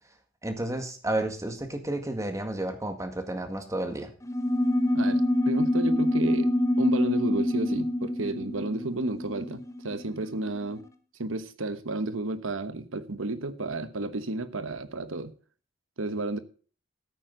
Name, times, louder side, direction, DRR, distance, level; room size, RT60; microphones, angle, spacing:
voice 1, 0.4-4.1, right 1 dB, 15° right, 1.9 m, -31 dB
sound 1, 4.2-10.2, left 1 dB, 15° left, 1.0 m, -26 dB
voice 2, 4.9-6.5 6.8-10.8 11.2-15.3 16.0-16.4, right 2 dB, 90° right, 1.2 m, -32 dB
14.0 x 9.1 x 3.9 m
head